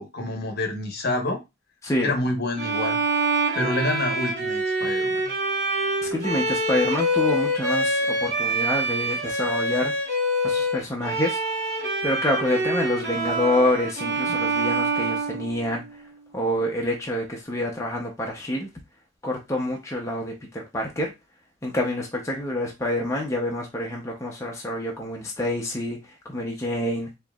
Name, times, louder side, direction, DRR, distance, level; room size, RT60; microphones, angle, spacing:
voice 1, 0.0-1.4 2.0-3.0 3.5-5.3 14.3-14.4, left 2 dB, 55° left, 4 dB, 1.0 m, -27 dB
Bowed string instrument, 2.6-16.0, right 1 dB, 60° right, 1.4 m, -26 dB
voice 2, 6.1-9.9 10.4-11.4 12.0-15.8 16.3-18.7 19.2-21.1 21.6-26.0 26.2-27.1, left 1 dB, 15° left, -1 dB, 0.6 m, -27 dB
4.5 x 2.8 x 2.3 m, 0.23 s
head